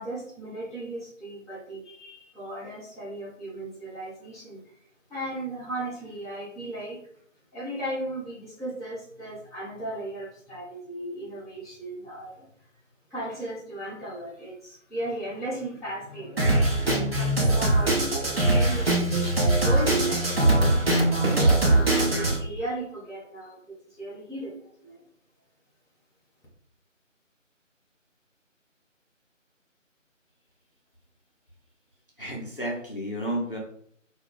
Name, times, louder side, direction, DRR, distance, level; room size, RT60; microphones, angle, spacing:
voice 1, 0.0-4.7 5.1-7.0 7.5-12.5 13.1-18.0 18.5-18.9 19.6-20.7 21.0-25.0, right 1 dB, ahead, -15 dB, 0.6 m, -36 dB
Drum kit, 16.4-22.4, right 2 dB, 50° right, 0.7 m, -22 dB
voice 2, 32.2-33.6, right 1 dB, 45° left, -2 dB, 0.5 m, -31 dB
2.2 x 2.0 x 3.7 m, 0.65 s
figure-of-eight pair, 165°, 39 cm